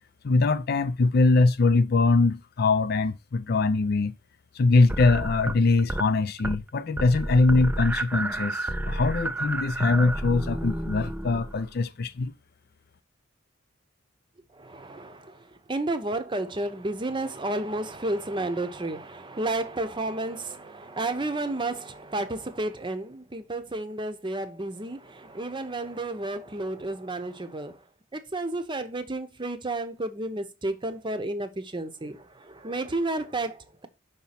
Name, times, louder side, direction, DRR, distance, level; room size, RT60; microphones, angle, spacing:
voice 1, 0.2-4.1 4.6-12.3, left 3 dB, 55° left, 0.5 m, -22 dB
sound 1, 4.9-6.1 6.4-6.7 7.0-11.7, right 1 dB, 10° right, 0.3 m, -31 dB
voice 2, 14.5-27.8 28.1-33.9, right 2 dB, 25° right, 0.8 m, -32 dB
5.7 x 4.2 x 5.8 m
head